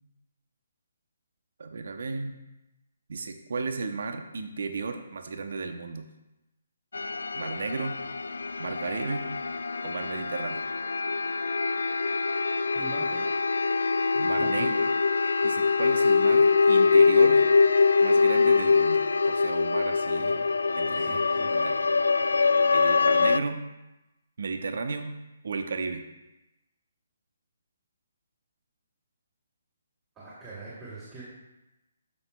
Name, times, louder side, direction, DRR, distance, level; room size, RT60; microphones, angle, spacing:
voice 1, 1.6-2.4 3.1-6.1 7.4-8.0 8.6-9.3 9.8-10.6 14.1-14.8 15.4-17.4 18.0-20.4 20.8-21.2 21.5-21.8 22.7-23.6 24.4-25.1 25.4-26.0, right 4 dB, 65° right, 7 dB, 0.7 m, -34 dB
sound 1, 6.9-23.4, left 4 dB, 80° left, 0.3 m, -23 dB
voice 2, 12.7-13.2 14.4-14.7 20.2-20.4 20.9-21.5 30.2-31.2, right 3 dB, 20° right, -10 dB, 2.7 m, -42 dB
12.5 x 6.2 x 2.3 m, 0.99 s
figure-of-eight pair, 145°, 0 cm